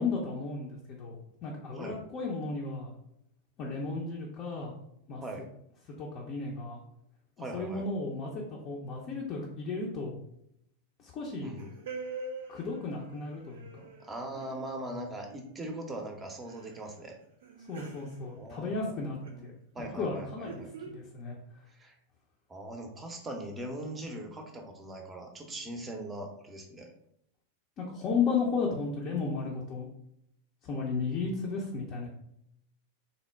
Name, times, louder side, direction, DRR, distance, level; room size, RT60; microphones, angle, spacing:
voice 1, 0.0-2.9 3.6-4.7 5.1-5.2 6.0-6.8 7.5-10.2 11.0-11.5 12.5-13.9 17.7-19.2 19.4-21.4 27.8-29.9 30.6-32.1, left 4 dB, 35° left, -2 dB, 0.6 m, -34 dB
voice 2, 7.4-7.9 11.4-11.7 14.0-17.2 18.4-19.4 19.7-20.7 21.7-21.9 22.5-26.9, right 1 dB, 15° right, 3 dB, 0.7 m, -40 dB
sound 1, 11.6-15.8 16.0-16.1 16.5-16.8 17.2-18.9 19.2-19.5 20.2-20.9, right 3 dB, 60° right, 0.5 m, -45 dB
3.9 x 2.1 x 3.3 m, 0.74 s
figure-of-eight pair, 90°, 0 cm